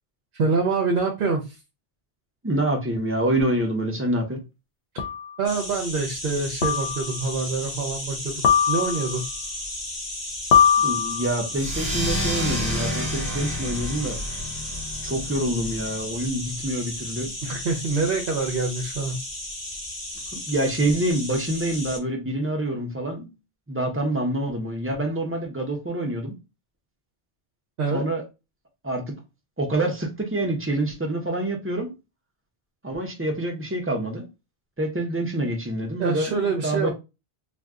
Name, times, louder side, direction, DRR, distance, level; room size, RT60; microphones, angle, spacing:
voice 1, 0.3-1.6 5.4-9.2 17.4-19.2 27.8-28.1 36.0-36.9, right 4 dB, 60° right, 0.8 m, -26 dB
voice 2, 2.4-4.4 10.8-14.2 15.0-17.3 20.5-23.3 23.7-26.4 27.9-28.2 28.8-29.2 29.6-31.9 32.8-34.3 34.8-36.9, right 1 dB, 15° right, 0.6 m, -26 dB
sound 1, 3.4-3.5 5.0-5.4 6.6-7.2 8.4-9.2 10.5-11.4, left 7 dB, 80° left, 0.9 m, -21 dB
sound 2, 5.4-22.0, left 1 dB, 35° left, 0.8 m, -34 dB
sound 3, 11.5-16.6, equal, 40° right, 1.2 m, -30 dB
2.6 x 2.2 x 3.4 m
omnidirectional pair, 1.1 m